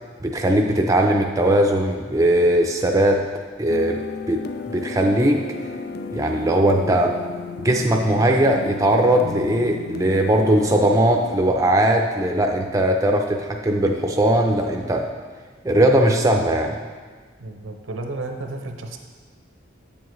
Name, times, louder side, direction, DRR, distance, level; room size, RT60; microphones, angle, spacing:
voice 1, 0.2-3.2 3.6-5.4 6.1-7.2 7.6-15.1 15.6-16.8, right 1 dB, 15° right, 2 dB, 0.4 m, -19 dB
sound 1, 3.7-11.5, left 5 dB, 50° left, 0.3 m, -34 dB
voice 2, 17.4-19.0, right 2 dB, 85° right, 4 dB, 0.8 m, -32 dB
8.7 x 7.1 x 3.1 m, 1.5 s
head